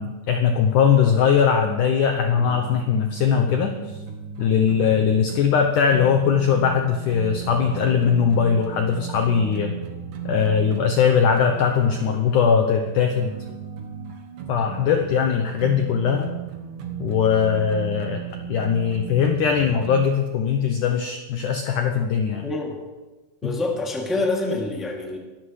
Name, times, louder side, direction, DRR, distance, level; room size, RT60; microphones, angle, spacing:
voice 1, 0.0-4.0 4.4-9.7 10.2-13.3 14.5-16.3 17.0-18.2 18.5-22.5 23.4-23.6, left 7 dB, 85° left, 5 dB, 1.8 m, -20 dB
sound 1, 2.3-20.1, right 9 dB, 60° right, 2.3 m, -35 dB
voice 2, 22.4-22.7 23.4-25.2, left 2 dB, ahead, -1 dB, 1.3 m, -26 dB
24.0 x 14.0 x 3.3 m, 1.2 s
omnidirectional pair, 4.8 m